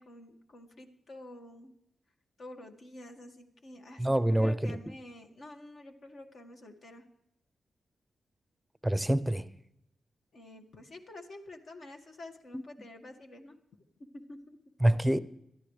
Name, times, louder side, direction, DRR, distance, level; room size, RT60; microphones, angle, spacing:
voice 1, 0.0-1.7 2.4-7.1 10.3-13.5 14.1-14.6, left 1 dB, 60° left, 2.0 m, -49 dB
voice 2, 4.0-4.8 8.8-9.5 12.5-12.6 14.8-15.2, right 1 dB, 5° right, 0.7 m, -26 dB
22.5 x 13.5 x 3.3 m
cardioid pair, 95°, 0 cm